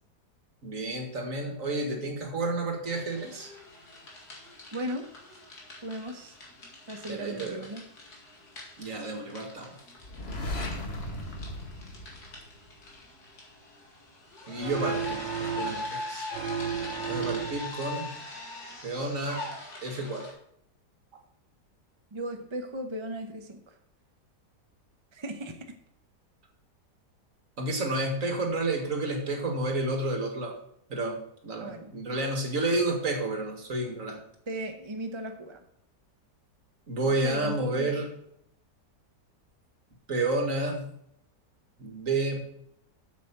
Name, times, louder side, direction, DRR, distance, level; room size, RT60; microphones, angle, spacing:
voice 1, 0.6-3.5 7.1-7.6 8.8-9.8 14.5-16.3 17.1-18.1 18.8-19.4 19.8-20.3 27.6-30.5 30.9-34.2 36.9-38.1 40.1-40.9 41.8-42.4, right 2 dB, 50° right, 3 dB, 2.1 m, -30 dB
sound 1, 2.8-20.3, left 2 dB, 65° left, 2.8 m, -42 dB
voice 2, 4.7-5.1 5.8-6.4 6.9-7.8 22.1-23.8 25.1-25.8 31.6-31.9 34.5-35.6 37.1-37.9, right 1 dB, 25° right, 5 dB, 0.6 m, -37 dB
sound 2, 10.0-12.9, left 1 dB, 35° left, 1.7 m, -36 dB
sound 3, 14.6-16.0 16.3-17.8, right 8 dB, 85° right, 1.5 m, -33 dB
8.4 x 7.4 x 5.9 m, 0.73 s
omnidirectional pair, 1.9 m